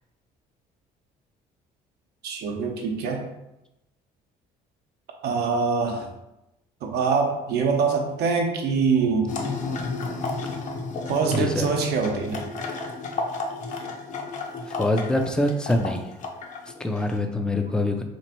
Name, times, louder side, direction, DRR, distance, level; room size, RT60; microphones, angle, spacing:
voice 1, 2.2-3.2 5.2-6.1 6.8-9.4 11.1-12.4, right 5 dB, 75° right, 2 dB, 0.7 m, -24 dB
sound 1, 9.3-17.2, left 3 dB, 50° left, 0.6 m, -32 dB
voice 2, 11.3-11.7 14.7-16.0 16.8-18.0, left 1 dB, 5° left, 5 dB, 0.4 m, -24 dB
3.0 x 2.5 x 4.3 m, 0.92 s
cardioid pair, 110°, 17 cm